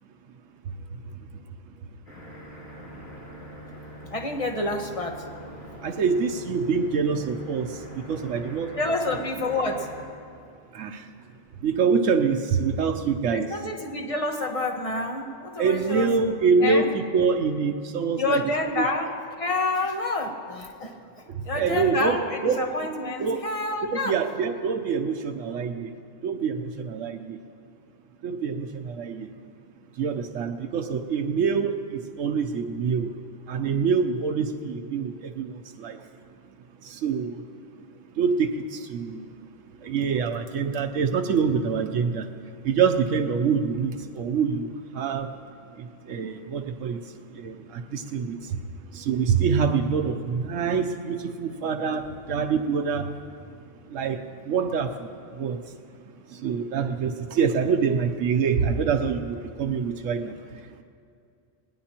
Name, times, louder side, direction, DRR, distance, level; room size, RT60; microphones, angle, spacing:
sound 1, 2.1-10.1, equal, 55° left, 3.9 m, -43 dB
voice 1, 4.1-5.3 8.8-9.9 13.3-16.3 16.6-16.9 18.1-24.2, left 2 dB, 30° left, 2 dB, 1.3 m, -28 dB
voice 2, 5.8-7.7 8.1-8.7 9.1-9.2 10.7-11.0 11.6-13.5 15.6-18.4 18.8-18.9 21.6-22.7 23.2-23.4 23.9-25.9 26.2-26.6 26.8-27.4 28.2-29.3 30.0-31.7 32.2-33.1 33.5-35.5 35.8-36.0 37.0-37.3 38.2-38.5 38.9-39.2 39.8-42.2 42.6-44.7 45.0-45.3 46.1-47.0 47.4-47.5 47.9-48.4 49.0-52.0 52.3-53.1 53.9-54.2 54.5-55.1 55.4-55.6 56.4-60.3, right 5 dB, 90° right, 5 dB, 1.1 m, -25 dB
19.5 x 19.0 x 2.9 m, 2.4 s
omnidirectional pair, 1.3 m